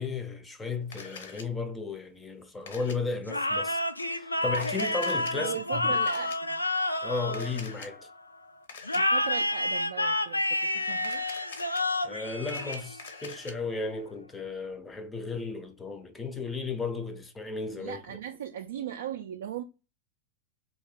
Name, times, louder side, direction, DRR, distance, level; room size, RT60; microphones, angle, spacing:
voice 1, 0.0-3.8 4.1-6.0 7.0-8.1 12.0-18.2, left 4 dB, 15° left, 0.5 m, -34 dB
Camera, 0.9-1.4 2.7-3.0 4.5-5.3 6.1-6.4 7.3-7.9 8.7-9.0 11.0-11.8 12.3-13.5, left 5 dB, 60° left, 0.7 m, -44 dB
sound 1, 3.3-8.1 8.8-13.3, left 1 dB, 85° left, 0.3 m, -29 dB
voice 2, 5.3-6.6 8.9-11.2 17.8-19.6, right 10 dB, 60° right, 0.3 m, -38 dB
2.8 x 2.7 x 3.8 m
figure-of-eight pair, 90°, 0 cm